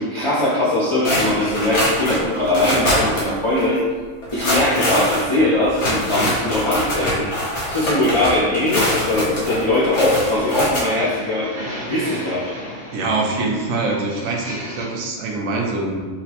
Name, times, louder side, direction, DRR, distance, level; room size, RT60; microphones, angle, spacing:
voice 1, 0.0-3.8 4.3-11.5 11.9-12.5, left 1 dB, 55° left, -9 dB, 0.3 m, -20 dB
sound 1, 1.0-3.3 3.6-3.7 4.2-10.8, left 1 dB, 70° left, 1.3 m, -23 dB
sound 2, 8.4-14.8, equal, 50° right, 1.3 m, -35 dB
voice 2, 12.9-16.0, right 3 dB, 80° right, 0 dB, 1.0 m, -24 dB
4.2 x 2.0 x 2.8 m, 1.4 s
omnidirectional pair, 1.3 m